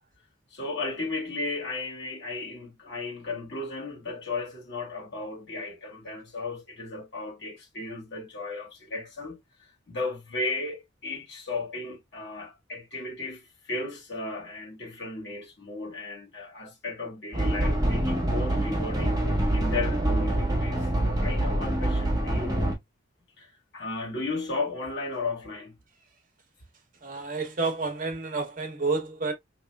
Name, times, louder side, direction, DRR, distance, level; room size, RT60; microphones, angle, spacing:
voice 1, 0.5-9.4 9.9-19.2 19.5-22.6 23.4-23.5 23.7-25.7, left 3 dB, 55° left, 2.1 m, -35 dB
sound 1, 17.3-22.7, right 1 dB, 20° right, 1.6 m, -25 dB
voice 2, 27.0-29.3, right 3 dB, 40° right, 1.0 m, -29 dB
4.9 x 3.1 x 2.3 m
head